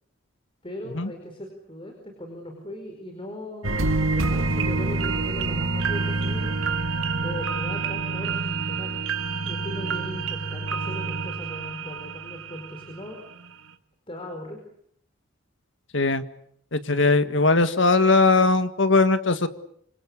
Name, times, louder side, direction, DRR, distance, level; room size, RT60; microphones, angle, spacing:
voice 1, 0.6-6.6 7.2-9.0 9.4-13.2 14.1-14.6, left 1 dB, 25° left, 3 dB, 4.7 m, -38 dB
sound 1, 3.6-13.0 13.4-13.5, right 3 dB, 90° right, 2.2 m, -27 dB
voice 2, 16.7-19.5, left 3 dB, 65° left, 11 dB, 1.7 m, -19 dB
26.5 x 25.5 x 8.4 m, 0.69 s
head